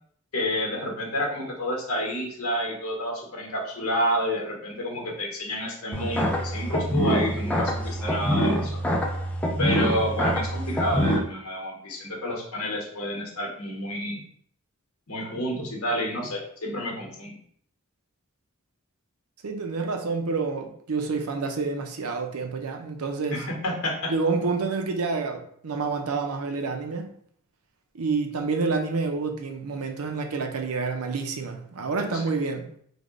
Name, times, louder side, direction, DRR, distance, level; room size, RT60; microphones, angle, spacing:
voice 1, 0.3-8.8 9.6-14.2 15.1-17.3 23.3-24.1 32.0-32.2, equal, 80° left, 0 dB, 1.1 m, -29 dB
sound 1, 5.9-11.2, equal, 5° left, 0.4 m, -25 dB
voice 2, 19.4-23.4 24.1-27.1 27.9-32.7, right 4 dB, 85° right, 4 dB, 0.6 m, -28 dB
3.5 x 2.2 x 3.6 m, 0.64 s
head